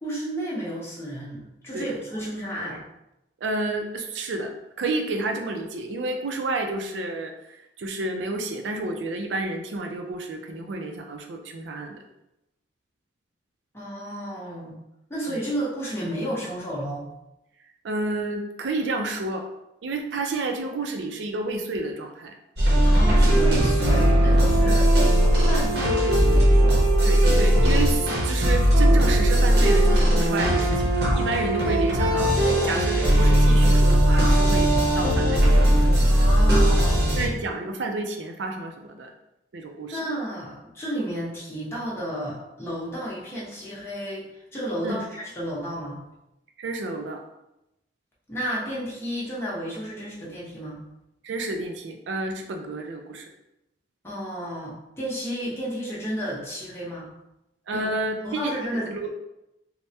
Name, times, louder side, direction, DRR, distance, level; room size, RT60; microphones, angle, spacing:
voice 1, 0.0-2.8 13.7-14.8 15.1-17.1 22.8-24.9 25.5-26.9 36.1-37.0 39.9-46.0 48.3-50.8 54.0-57.1 57.7-57.9 58.2-58.9, equal, 15° left, -7 dB, 0.8 m, -32 dB
voice 2, 3.4-12.0 15.3-15.5 17.8-19.5 19.8-22.3 24.6-24.8 27.0-35.9 37.2-39.1 39.5-40.0 44.8-45.0 46.6-47.2 51.2-53.3 57.7-59.1, right 2 dB, 85° right, 4 dB, 0.4 m, -30 dB
sound 1, 22.6-37.3, equal, 65° right, 0.8 m, -18 dB
3.3 x 2.1 x 2.7 m, 0.89 s
head